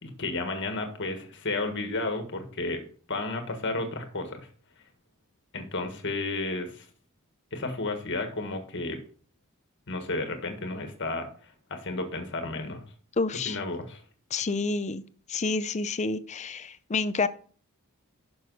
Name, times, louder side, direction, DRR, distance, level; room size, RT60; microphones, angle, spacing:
voice 1, 0.0-2.8 3.1-4.5 5.5-6.9 7.5-9.0 9.9-12.8 13.4-14.0, left 2 dB, 55° left, 6 dB, 1.6 m, -32 dB
voice 2, 13.2-13.6 14.3-15.0 15.3-17.3, left 3 dB, 30° left, 14 dB, 0.5 m, -28 dB
11.0 x 6.2 x 4.0 m, 0.43 s
head